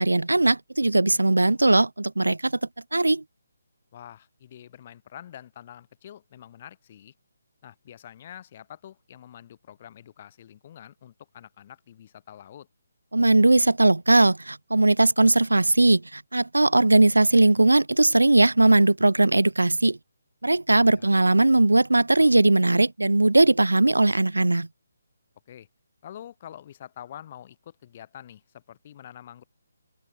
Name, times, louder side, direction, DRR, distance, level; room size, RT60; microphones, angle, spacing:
voice 1, 0.0-2.5 2.9-3.2 13.1-20.0 20.4-24.7, right 2 dB, 85° right, 0.4 m, -19 dB
voice 2, 3.9-7.1 7.6-12.7 20.8-21.1 25.5-25.7 26.0-29.4, left 10 dB, 35° left, 2.7 m, -46 dB
figure-of-eight pair, 145°, 0 cm